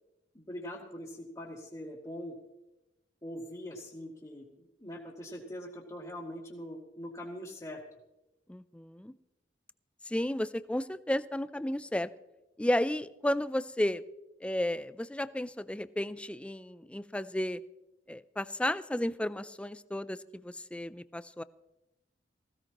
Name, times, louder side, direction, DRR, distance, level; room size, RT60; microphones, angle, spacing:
voice 1, 0.3-2.4 3.2-7.8, equal, 25° left, -6 dB, 2.4 m, -42 dB
voice 2, 8.5-9.1 10.1-12.1 12.6-14.0 14.4-17.6 18.1-21.4, left 1 dB, 5° left, 15 dB, 0.4 m, -33 dB
19.0 x 16.0 x 3.0 m, 0.98 s
head